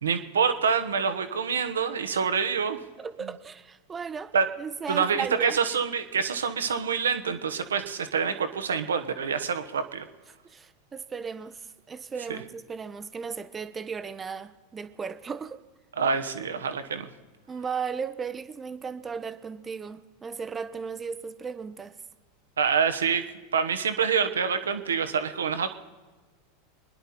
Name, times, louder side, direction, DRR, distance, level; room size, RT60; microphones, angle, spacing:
voice 1, 0.0-2.8 4.3-4.5 4.9-10.0 12.3-12.4 16.0-17.1 22.6-23.2 23.5-25.7, right 6 dB, 80° right, 1.2 m, -26 dB
voice 2, 3.0-5.6 10.4-15.6 17.5-21.9, right 6 dB, 20° right, 1.0 m, -36 dB
25.0 x 10.5 x 4.3 m
figure-of-eight pair, 90°, 0 cm